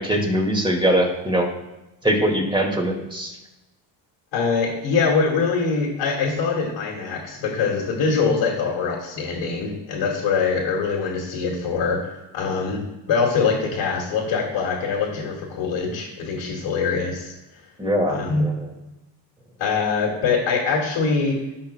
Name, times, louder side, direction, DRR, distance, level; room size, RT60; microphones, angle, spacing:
voice 1, 0.0-1.5 2.0-3.4 17.8-18.2 18.4-18.7, right 1 dB, 10° right, 0 dB, 2.1 m, -22 dB
voice 2, 4.3-12.0 12.3-17.3 18.1-18.5 19.6-21.4, left 5 dB, 70° left, -4 dB, 2.4 m, -23 dB
15.5 x 5.7 x 2.3 m, 1.0 s
cardioid pair, 90°, 47 cm